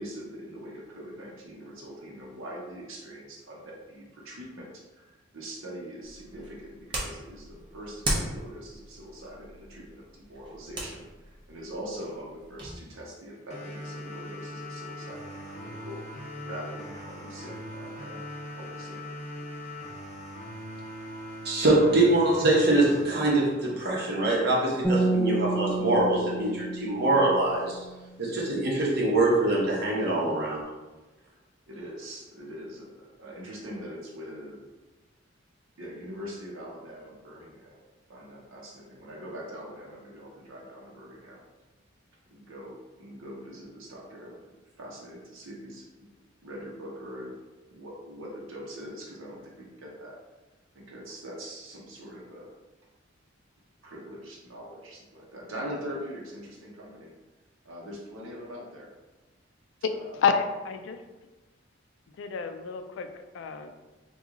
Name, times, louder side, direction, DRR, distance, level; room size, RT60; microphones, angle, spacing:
voice 1, 0.0-4.6 5.3-6.6 6.9-7.5 7.7-9.8 10.3-11.0 11.5-15.2 15.6-16.0 16.4-18.2 18.5-19.0 21.8-22.0 31.7-32.8 33.2-34.6 35.8-37.8 38.1-41.4 42.3-44.3 44.8-45.8 46.4-47.3 47.7-49.4 49.8-50.2 50.9-52.5 53.8-57.1 57.7-58.9 59.9-60.2, equal, 90° right, -3 dB, 0.7 m, -42 dB
sound 1, 6.0-12.8, right 1 dB, 25° right, 0.6 m, -37 dB
sound 2, 13.5-24.5, equal, 35° left, 0.7 m, -41 dB
voice 2, 21.4-27.8 28.2-30.6, right 2 dB, 50° right, -4 dB, 0.9 m, -24 dB
sound 3, 24.8-28.0, right 2 dB, 5° left, 0.9 m, -29 dB
voice 3, 60.2-61.0 62.2-63.1 63.3-63.7, left 6 dB, 70° left, 8 dB, 0.3 m, -28 dB
2.9 x 2.3 x 3.6 m, 1.2 s
head